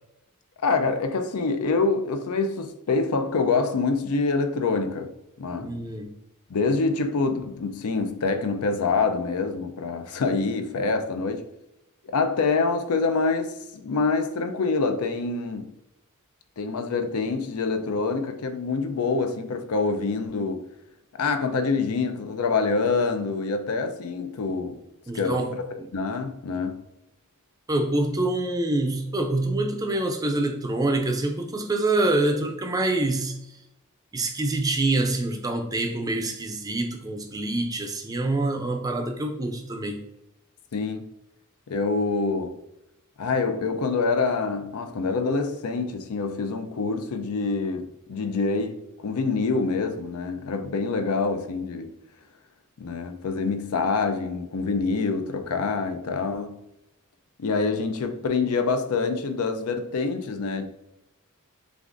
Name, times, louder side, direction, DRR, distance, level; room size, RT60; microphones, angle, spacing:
voice 1, 0.6-5.1 5.4-5.8 6.5-11.4 12.1-15.7 16.6-20.7 21.2-24.8 25.1-25.4 25.9-26.8 40.7-41.1 41.7-42.5 43.2-51.9 52.8-56.6 57.4-60.7, left 4 dB, 75° left, 0.5 m, -26 dB
voice 2, 5.6-6.1 25.1-25.5 25.8-25.9 27.7-33.4 34.1-40.0, right 2 dB, 15° right, 0.4 m, -26 dB
6.5 x 2.5 x 2.5 m
head